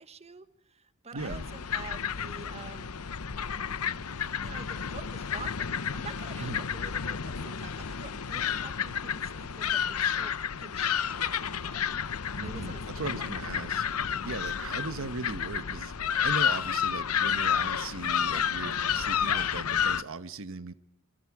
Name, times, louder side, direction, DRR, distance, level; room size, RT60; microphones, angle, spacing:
voice 1, 0.0-2.9 4.4-11.8 12.4-13.3 19.3-19.5, right 4 dB, 30° right, 12 dB, 1.3 m, -47 dB
voice 2, 1.1-1.4 6.4-6.6 12.4-13.8 14.2-15.9 16.2-20.7, right 3 dB, 65° right, 12 dB, 1.1 m, -38 dB
sound 1, 1.2-20.0, left 8 dB, 80° left, 0.8 m, -31 dB
26.5 x 25.5 x 4.8 m, 0.73 s
head